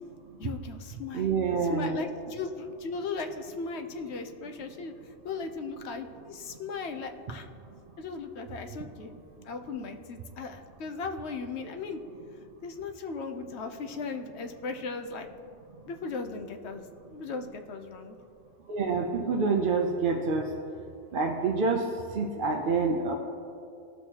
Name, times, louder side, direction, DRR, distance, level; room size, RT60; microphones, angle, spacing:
voice 1, 0.4-1.3 1.7-7.5 8.0-9.1 9.4-12.0 12.6-15.3 15.9-18.2, left 4 dB, 65° left, 6 dB, 0.9 m, -37 dB
voice 2, 1.1-2.0 18.7-20.5 21.1-23.1, right 4 dB, 50° right, 1 dB, 0.7 m, -27 dB
17.0 x 6.3 x 2.9 m, 2.6 s
omnidirectional pair, 1.3 m